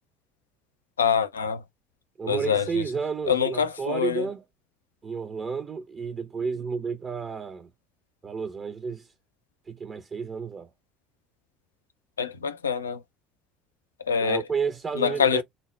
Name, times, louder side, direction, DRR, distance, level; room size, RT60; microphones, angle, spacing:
voice 1, 1.0-1.6 2.3-2.8 3.3-4.2 12.2-13.0 14.1-14.4 15.0-15.4, left 7 dB, 85° left, 0.4 m, -25 dB
voice 2, 2.2-4.4 5.0-7.7 8.2-9.1 9.7-10.7 14.2-15.4, right 5 dB, 35° right, 0.5 m, -31 dB
4.0 x 2.1 x 3.1 m
hypercardioid pair, 60°, 0 cm